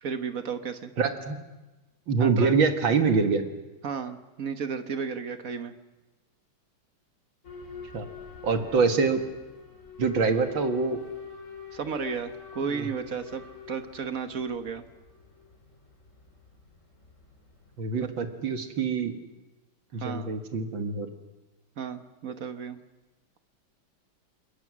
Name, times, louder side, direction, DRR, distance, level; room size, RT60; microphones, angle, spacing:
voice 1, 0.0-0.9 2.2-2.5 3.8-5.7 11.7-14.8 17.9-18.1 20.0-20.3 21.8-22.8, right 6 dB, 45° right, 9 dB, 1.3 m, -33 dB
voice 2, 1.0-1.4 2.1-3.5 7.9-8.1 8.4-9.2 10.0-11.0 12.6-12.9 17.8-19.1 19.9-21.1, right 5 dB, 65° right, 6 dB, 2.4 m, -25 dB
Boat Water vehicle / Alarm, 7.4-18.1, left 7 dB, 35° left, 3.3 m, -45 dB
28.0 x 21.5 x 6.2 m, 1.1 s
omnidirectional pair, 2.3 m